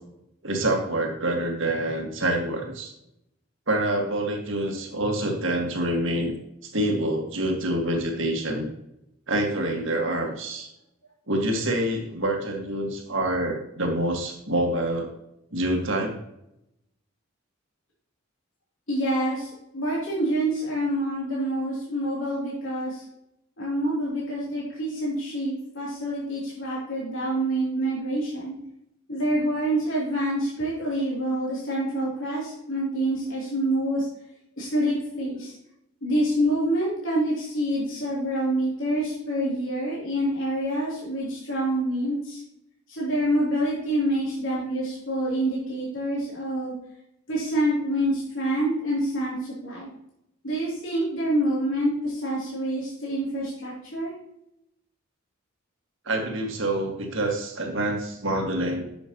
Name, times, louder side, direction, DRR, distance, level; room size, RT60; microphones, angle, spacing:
voice 1, 0.4-2.9 3.7-6.4 6.7-8.7 9.3-10.7 11.3-15.1 15.5-16.2 56.1-58.9, right 1 dB, 60° right, 2 dB, 1.9 m, -26 dB
voice 2, 18.9-23.0 23.6-28.6 29.1-34.1 34.6-35.5 36.0-42.4 42.9-46.7 47.3-49.9 50.4-54.1, right 1 dB, 65° left, -7 dB, 3.3 m, -27 dB
10.0 x 7.1 x 3.0 m, 0.83 s
head